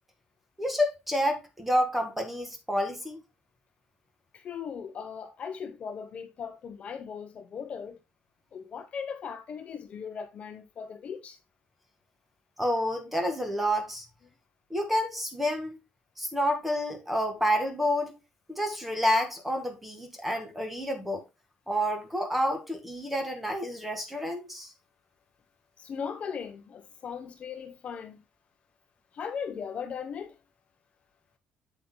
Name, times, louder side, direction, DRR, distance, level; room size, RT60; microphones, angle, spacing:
voice 1, 0.6-3.2 12.6-14.1 14.7-15.8 16.2-18.1 18.5-21.2 21.7-24.7, equal, 5° right, 1.8 m, -29 dB
voice 2, 4.3-8.0 8.5-11.4 25.8-28.2 29.1-30.4, left 6 dB, 40° left, 0.9 m, -38 dB
8.4 x 8.2 x 2.2 m
cardioid pair, 160°, 3 cm